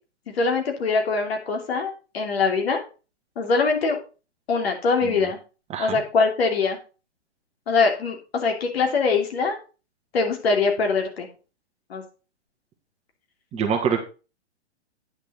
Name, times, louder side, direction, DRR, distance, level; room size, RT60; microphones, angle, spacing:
voice 1, 0.3-2.8 3.4-4.0 4.5-5.4 5.8-6.8 7.7-9.6 10.1-11.3 11.9-12.0, left 4 dB, 60° left, 3 dB, 3.0 m, -23 dB
voice 2, 13.5-14.0, right 6 dB, 20° right, 3 dB, 1.5 m, -25 dB
9.7 x 6.6 x 4.4 m, 0.33 s
figure-of-eight pair, 120°, 35 cm